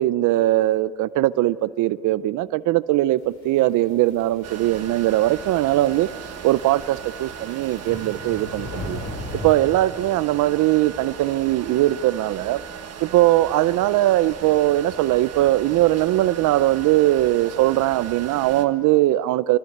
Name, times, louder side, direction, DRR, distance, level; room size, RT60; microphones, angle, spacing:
voice 1, 0.0-6.1 6.4-9.0 9.4-12.6 13.0-19.6, right 15 dB, 90° right, 0.6 m, -20 dB
sound 1, 3.4-9.5, left 2 dB, 80° left, 5.4 m, -38 dB
sound 2, 4.4-18.7, right 8 dB, 55° right, 1.6 m, -38 dB
26.0 x 18.5 x 9.2 m
cardioid pair, 90°, 30 cm